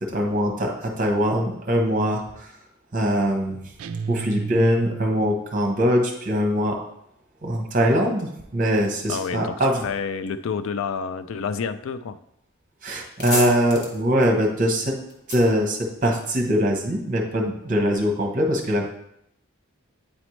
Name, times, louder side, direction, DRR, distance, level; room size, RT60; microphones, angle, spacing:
voice 1, 0.0-2.6 2.9-3.6 4.1-6.8 7.4-9.8 12.8-15.0 15.3-18.9, equal, 40° right, 1 dB, 1.0 m, -22 dB
sound 1, 3.8-5.5, right 5 dB, 85° right, 0.3 m, -32 dB
voice 2, 9.1-9.6 9.8-12.2, left 6 dB, 70° left, 11 dB, 0.4 m, -29 dB
sound 2, 12.4-12.6 12.9-16.5, left 2 dB, 50° left, 1.2 m, -33 dB
8.6 x 4.2 x 3.1 m, 0.76 s
head